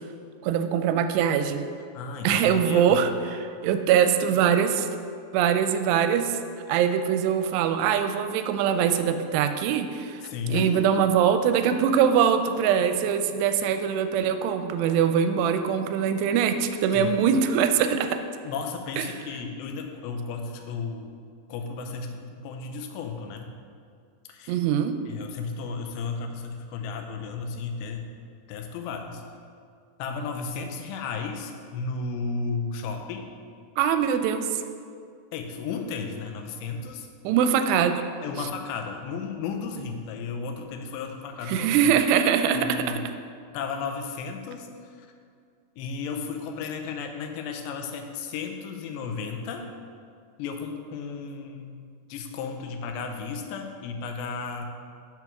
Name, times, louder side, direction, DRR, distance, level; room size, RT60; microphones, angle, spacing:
voice 1, 0.4-1.6 2.2-4.9 5.3-6.4 6.7-10.2 10.5-18.2 19.0-19.1 24.5-24.9 33.8-34.5 37.2-38.0 41.5-43.0, right 8 dB, 85° right, 8 dB, 2.6 m, -23 dB
voice 2, 1.9-3.1 10.2-10.9 16.9-17.1 18.4-21.1 21.5-23.5 24.3-24.6 25.1-28.1 28.5-29.2 30.0-33.3 35.3-37.1 38.2-41.9 42.5-43.0 43.5-44.7 45.0-45.1 45.8-49.7 50.4-54.7, left 5 dB, 90° left, 4 dB, 2.9 m, -34 dB
6.9 x 6.0 x 5.9 m, 2.3 s
omnidirectional pair, 4.8 m